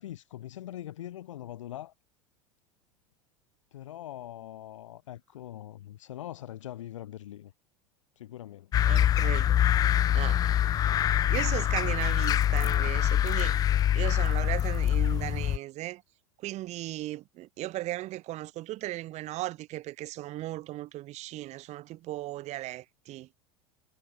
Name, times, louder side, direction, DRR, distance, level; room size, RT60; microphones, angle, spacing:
voice 1, 0.0-1.9 3.7-7.5 8.2-8.7 9.1-9.5 10.6-11.0 13.7-13.9, left 13 dB, 65° left, 2.3 m, -43 dB
sound 1, 8.7-15.6, left 11 dB, 20° left, 0.4 m, -25 dB
voice 2, 8.8-9.6 10.1-11.0 11.3-13.6 13.9-16.0 16.4-23.3, right 16 dB, 40° right, 5.8 m, -37 dB
figure-of-eight pair, 80°, 17 cm